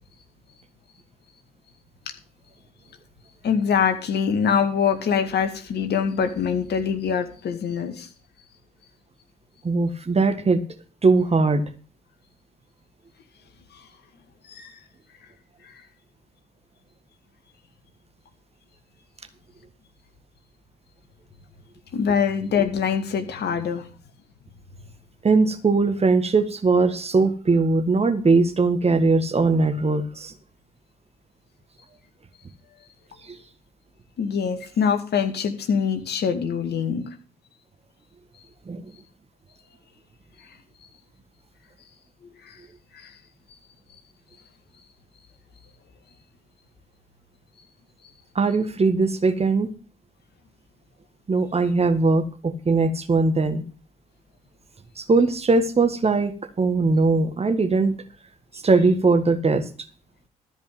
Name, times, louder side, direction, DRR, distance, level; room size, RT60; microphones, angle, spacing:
voice 1, 3.4-8.1 14.5-14.7 15.6-15.7 21.9-23.8 34.2-37.1 42.5-42.6 42.9-43.1, left 7 dB, 55° left, 7 dB, 2.0 m, -24 dB
voice 2, 9.6-10.6 11.0-11.6 25.2-30.3 33.3-33.4 38.7-38.9 48.3-49.7 51.3-53.6 55.0-58.0 58.6-59.6, right 3 dB, 30° right, 9 dB, 1.7 m, -20 dB
13.5 x 5.3 x 7.8 m, 0.38 s
hypercardioid pair, 45°, 20 cm